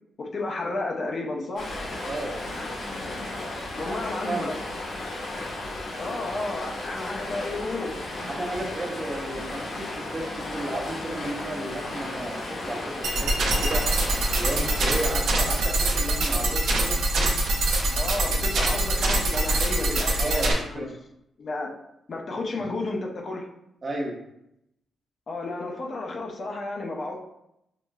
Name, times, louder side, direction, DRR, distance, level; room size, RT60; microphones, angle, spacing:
voice 1, 0.2-1.8 3.8-4.6 6.0-8.1 18.0-20.8 21.4-21.7 22.1-23.5 25.3-27.2, left 2 dB, 45° left, 1 dB, 0.6 m, -32 dB
Stream, 1.6-15.1, left 2 dB, 90° left, 1.4 m, -34 dB
voice 2, 2.0-2.4 3.8-4.5 8.3-13.3 13.6-13.9 14.4-17.0 20.2-20.9 23.8-24.2, right 1 dB, 35° right, 0 dB, 0.7 m, -33 dB
sound 1, 13.0-20.5, right 1 dB, 80° right, 0.6 m, -24 dB
5.9 x 2.1 x 2.3 m, 0.81 s
cardioid pair, 125°, 0 cm